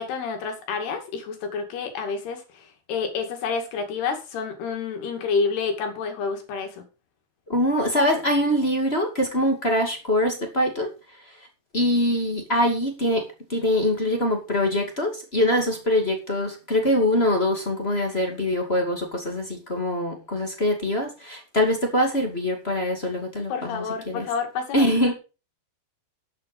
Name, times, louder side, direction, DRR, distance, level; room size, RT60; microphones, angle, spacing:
voice 1, 0.0-6.8 23.5-25.1, left 5 dB, 75° left, 5 dB, 4.3 m, -29 dB
voice 2, 7.5-10.9 11.7-24.3 24.7-25.1, left 1 dB, 20° left, 3 dB, 1.7 m, -23 dB
11.5 x 8.3 x 5.4 m, 0.32 s
omnidirectional pair, 4.6 m